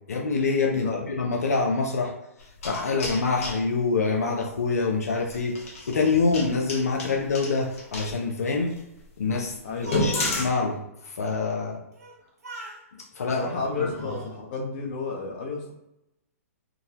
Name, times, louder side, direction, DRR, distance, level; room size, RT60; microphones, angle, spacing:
voice 1, 0.1-2.1 2.6-8.7 9.2-11.8 12.9-13.4 13.8-13.9, left 4 dB, 85° left, 1 dB, 0.5 m, -26 dB
sound 1, 2.4-3.6 5.2-8.1 8.7-8.8 9.2-9.3 9.8-10.5, left 2 dB, 65° left, 1.1 m, -31 dB
voice 2, 9.6-10.3 13.4-15.7, left 3 dB, 45° left, -1 dB, 0.9 m, -32 dB
Speech, 9.6-10.6 11.9-12.2 12.4-12.8 13.5-14.3, right 2 dB, 90° right, 1.0 m, -39 dB
3.7 x 2.2 x 2.8 m, 0.88 s
hypercardioid pair, 130°, 8 cm